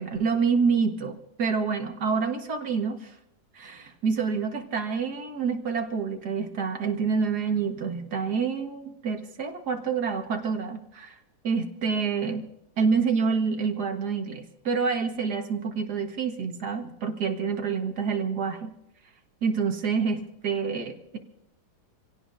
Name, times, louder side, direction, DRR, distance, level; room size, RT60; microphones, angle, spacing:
voice 1, 0.0-3.1 3.5-11.2 11.4-12.5 12.8-18.7 19.4-21.2, right 5 dB, 85° right, 5 dB, 2.1 m, -27 dB
27.0 x 17.0 x 2.7 m, 0.81 s
omnidirectional pair, 1.7 m